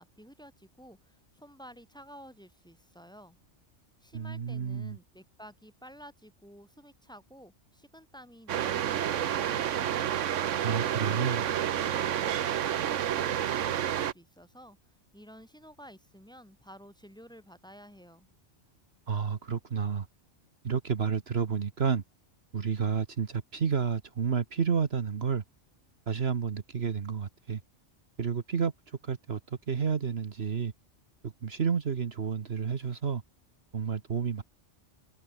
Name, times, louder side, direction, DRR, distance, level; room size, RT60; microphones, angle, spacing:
voice 1, 0.0-3.4 4.0-9.8 11.8-14.8 15.1-18.3, equal, 5° left, 3.7 m, -52 dB
voice 2, 4.1-5.0 10.6-11.4 19.1-20.1 20.6-22.0 22.5-25.4 26.1-27.6 28.2-30.7 31.2-33.2 33.7-34.4, right 6 dB, 60° right, 1.4 m, -30 dB
sound 1, 8.5-14.1, right 10 dB, 85° right, 1.2 m, -29 dB
omnidirectional pair, 1.2 m